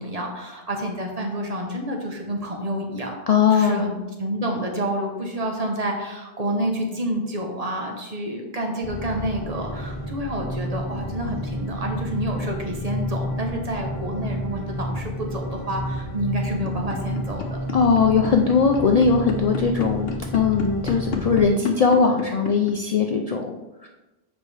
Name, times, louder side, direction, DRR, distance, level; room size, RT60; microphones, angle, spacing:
voice 1, 0.0-3.2 3.5-17.6, right 1 dB, 40° right, 1 dB, 1.0 m, -29 dB
voice 2, 3.3-3.9 17.7-23.9, left 5 dB, 50° left, 2 dB, 0.5 m, -20 dB
sound 1, 8.8-21.5, equal, 35° left, 1.1 m, -31 dB
sound 2, 16.5-22.7, left 6 dB, 75° left, 1.0 m, -31 dB
7.5 x 5.0 x 3.3 m, 1.1 s
omnidirectional pair, 1.0 m